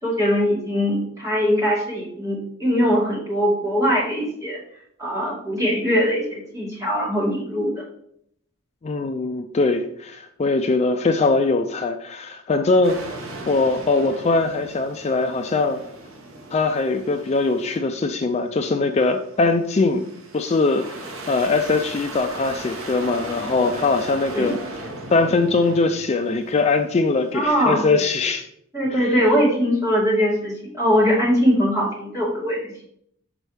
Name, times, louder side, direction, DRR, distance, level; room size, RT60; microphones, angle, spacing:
voice 1, 0.0-4.6 5.0-7.7 24.3-24.6 27.3-27.9 28.7-32.7, equal, 15° right, -6 dB, 2.4 m, -21 dB
voice 2, 8.8-13.1 13.5-15.8 16.5-20.0 20.3-24.5 25.1-28.5 28.9-29.1, left 3 dB, 30° left, 5 dB, 0.4 m, -21 dB
sound 1, 12.8-17.9 18.2-27.4, right 2 dB, 75° right, 0.9 m, -37 dB
6.1 x 5.3 x 3.3 m, 0.69 s
head